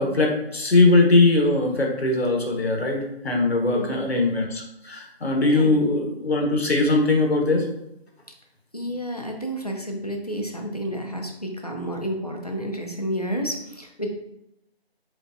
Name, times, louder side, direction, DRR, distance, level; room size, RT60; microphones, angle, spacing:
voice 1, 0.0-7.6, left 2 dB, 75° left, 1 dB, 1.0 m, -20 dB
voice 2, 3.6-4.1 5.5-5.9 8.7-14.1, equal, 40° left, 2 dB, 0.4 m, -30 dB
3.9 x 3.3 x 2.5 m, 0.82 s
figure-of-eight pair, 170°, 32 cm